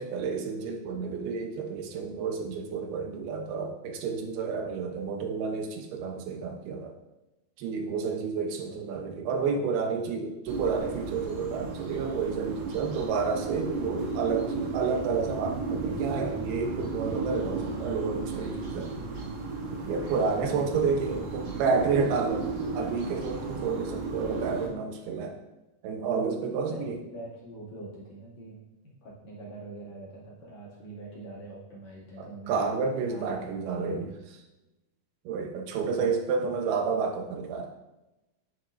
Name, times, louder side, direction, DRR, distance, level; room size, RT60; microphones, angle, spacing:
voice 1, 0.0-7.0 7.6-18.9 19.7-22.5 22.7-25.4 25.8-27.0 32.2-34.1 35.3-37.7, right 5 dB, 85° right, 3 dB, 2.9 m, -30 dB
voice 2, 7.8-8.2 8.7-9.2 9.5-10.1 20.2-21.2 26.7-32.6 32.9-34.3 35.9-36.1 36.4-36.5, right 2 dB, 50° left, -7 dB, 3.3 m, -44 dB
sound 1, 10.5-24.7, right 3 dB, 65° right, 2.7 m, -34 dB
9.6 x 9.3 x 2.6 m, 0.99 s
omnidirectional pair, 4.4 m